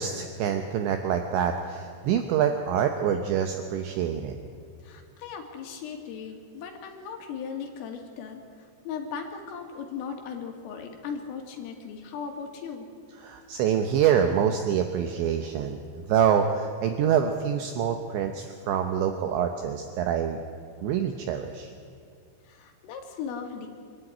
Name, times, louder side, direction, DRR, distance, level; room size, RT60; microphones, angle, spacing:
voice 1, 0.0-4.4 13.2-15.8 16.1-20.4 20.8-21.7, right 8 dB, 75° right, 6 dB, 2.9 m, -26 dB
voice 2, 4.8-12.9 22.4-23.7, left 6 dB, 80° left, 3 dB, 4.7 m, -38 dB
24.5 x 13.0 x 10.0 m, 2.2 s
omnidirectional pair, 5.9 m